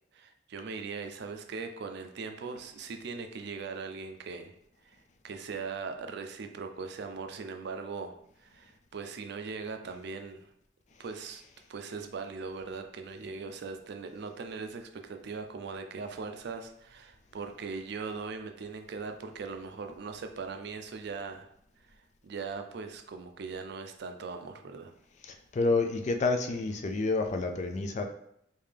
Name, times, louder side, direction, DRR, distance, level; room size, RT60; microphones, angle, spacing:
voice 1, 0.1-4.5 4.9-5.0 5.2-10.5 11.0-11.4 11.7-21.5 22.2-24.9, right 4 dB, 65° right, 6 dB, 0.4 m, -40 dB
voice 2, 25.2-28.0, left 3 dB, 40° left, 5 dB, 0.4 m, -29 dB
3.5 x 2.7 x 3.3 m, 0.73 s
head